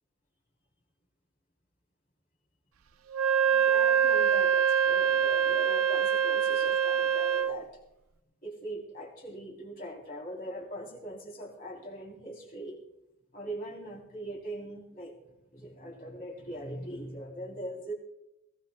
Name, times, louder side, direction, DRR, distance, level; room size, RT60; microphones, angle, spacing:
Wind instrument woodwind instrument, 3.1-7.6, right 8 dB, 70° right, 0.5 m, -25 dB
voice 1, 3.4-7.8 8.4-12.8 13.3-15.2 15.5-17.9, right 1 dB, 40° left, 0 dB, 3.4 m, -41 dB
21.5 x 16.5 x 2.3 m, 0.87 s
head